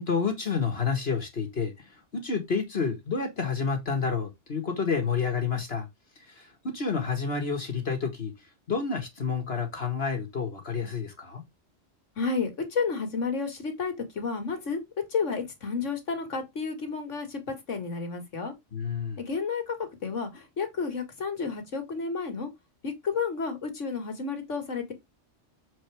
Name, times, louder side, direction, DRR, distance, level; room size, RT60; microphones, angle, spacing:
voice 1, 0.0-5.9 6.3-8.3 8.7-11.4 18.7-19.2, left 5 dB, 55° left, 1.9 m, -29 dB
voice 2, 12.2-14.8 15.1-18.5 19.2-22.5 22.8-24.9, left 5 dB, 80° left, 2.3 m, -31 dB
7.1 x 4.7 x 3.5 m
omnidirectional pair, 1.2 m